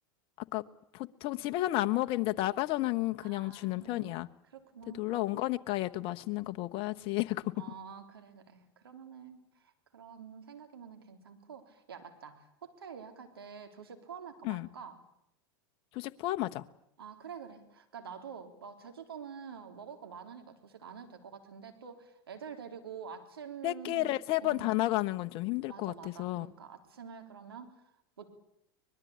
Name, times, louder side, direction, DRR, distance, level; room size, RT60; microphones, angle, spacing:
voice 1, 0.9-4.3 5.0-7.5 14.4-14.7 15.9-16.6 23.6-26.5, left 17 dB, 50° left, 9 dB, 1.1 m, -32 dB
voice 2, 3.2-4.2 4.5-5.4 7.6-15.0 17.0-24.1 24.4-24.9 25.7-27.8 28.2-28.3, right 7 dB, 85° right, 6 dB, 3.6 m, -47 dB
24.0 x 21.0 x 8.7 m, 0.78 s
hypercardioid pair, 100°, 12 cm